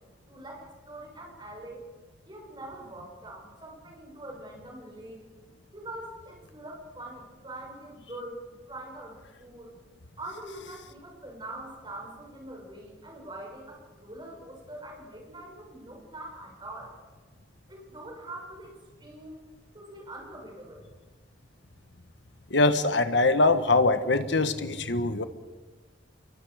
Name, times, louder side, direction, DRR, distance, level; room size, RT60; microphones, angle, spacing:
voice 1, 0.3-1.8 2.2-5.2 5.7-8.4 8.7-9.7 10.2-16.9 17.7-19.4 19.7-20.9, right 1 dB, 25° right, -1 dB, 6.8 m, -43 dB
voice 2, 22.5-25.2, left 3 dB, 70° left, 10 dB, 1.4 m, -23 dB
28.0 x 23.0 x 5.0 m, 1.3 s
head